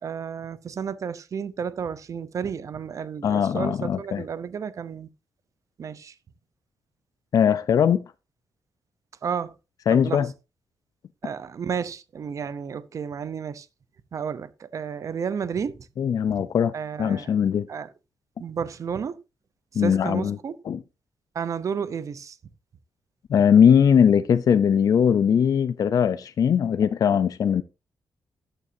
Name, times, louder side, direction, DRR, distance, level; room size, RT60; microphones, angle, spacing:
voice 1, 0.0-5.1 5.8-6.1 9.2-9.6 9.9-10.2 11.2-13.7 14.1-15.9 16.3-16.4 16.7-17.3 17.7-17.9 18.4-19.2 19.7-20.6 21.3-22.4, right 7 dB, 45° right, 0.8 m, -32 dB
voice 2, 3.2-4.2 7.3-8.0 9.9-10.3 16.0-16.7 17.0-17.7 19.7-20.4 20.7-20.8 23.3-27.6, left 8 dB, 55° left, 0.6 m, -20 dB
14.0 x 9.1 x 2.7 m
wide cardioid pair, 175°, 8 cm